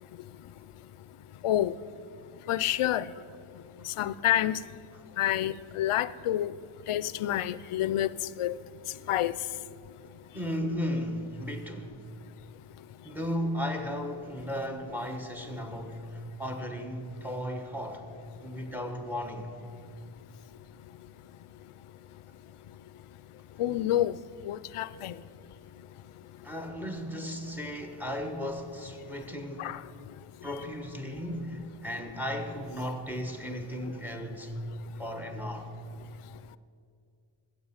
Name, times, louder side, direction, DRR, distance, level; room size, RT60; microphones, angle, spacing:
voice 1, 2.5-3.0 4.0-4.6 5.2-6.5 6.9-8.1 8.4-8.5 9.1-9.3 23.6-24.1 24.5-25.1 29.6-29.7, left 12 dB, 85° left, 0.5 m, -27 dB
voice 2, 10.3-12.0 13.0-18.0 18.4-19.6 26.4-29.7 30.4-34.5 35.0-35.7, equal, 5° right, 1.2 m, -35 dB
14.5 x 7.8 x 7.3 m
wide cardioid pair, 130°, 49 cm